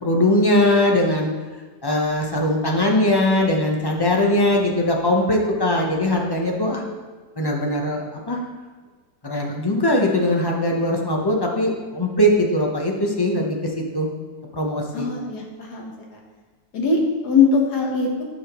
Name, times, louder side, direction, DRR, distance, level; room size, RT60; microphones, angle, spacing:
voice 1, 0.0-1.3 1.8-6.8 7.4-8.4 9.2-14.1 14.5-15.1, left 1 dB, 20° left, 0 dB, 0.7 m, -20 dB
voice 2, 14.9-16.2 16.7-18.2, left 5 dB, 75° left, 0 dB, 1.8 m, -21 dB
12.0 x 5.3 x 3.1 m, 1.4 s
omnidirectional pair, 1.7 m